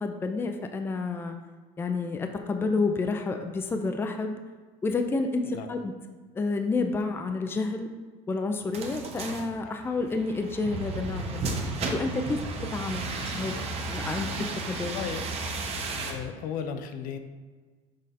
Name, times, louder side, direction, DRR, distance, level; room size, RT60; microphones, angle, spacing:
voice 1, 0.0-1.4 1.8-4.4 4.8-5.9 6.4-7.9 8.3-12.4 12.7-13.5 13.9-14.3 14.7-14.9, left 3 dB, 15° left, 5 dB, 0.4 m, -29 dB
sound 1, 8.7-16.1, right 3 dB, 40° right, 1.0 m, -33 dB
voice 2, 13.3-13.6 14.8-15.3 16.0-17.2, left 7 dB, 60° left, 8 dB, 0.6 m, -36 dB
6.4 x 3.8 x 4.1 m, 1.4 s
cardioid pair, 125°, 16 cm